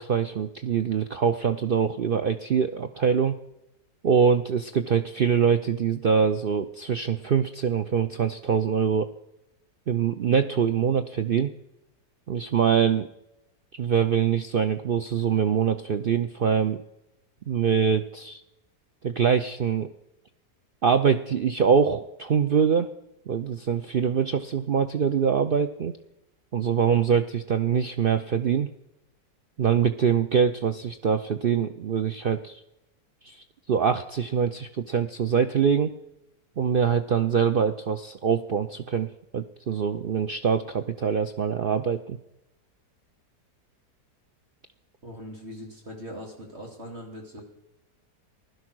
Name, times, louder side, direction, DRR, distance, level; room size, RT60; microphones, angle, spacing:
voice 1, 0.0-3.4 4.0-9.1 9.9-11.5 12.3-13.1 13.8-16.8 17.5-18.4 19.0-19.9 20.8-22.9 23.3-25.9 26.5-28.7 29.6-32.6 33.2-35.9 36.6-39.1 39.3-42.2, right 7 dB, 85° right, 9 dB, 0.4 m, -24 dB
voice 2, 45.0-47.4, equal, 40° right, 0 dB, 3.0 m, -41 dB
16.0 x 12.0 x 6.2 m, 0.90 s
omnidirectional pair, 1.8 m